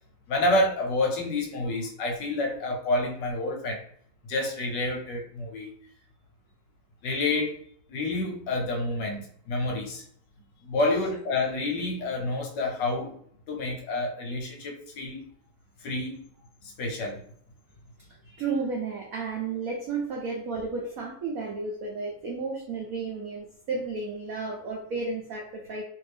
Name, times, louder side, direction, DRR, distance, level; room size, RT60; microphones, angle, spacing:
voice 1, 0.3-3.8 4.3-5.7 7.0-7.5 7.9-10.0 10.6-13.1 13.5-15.3 15.8-16.2 16.6-17.2, left 2 dB, 70° left, 1 dB, 1.2 m, -28 dB
voice 2, 18.1-25.8, right 4 dB, 80° right, -1 dB, 0.7 m, -33 dB
3.0 x 2.6 x 3.2 m, 0.62 s
omnidirectional pair, 2.2 m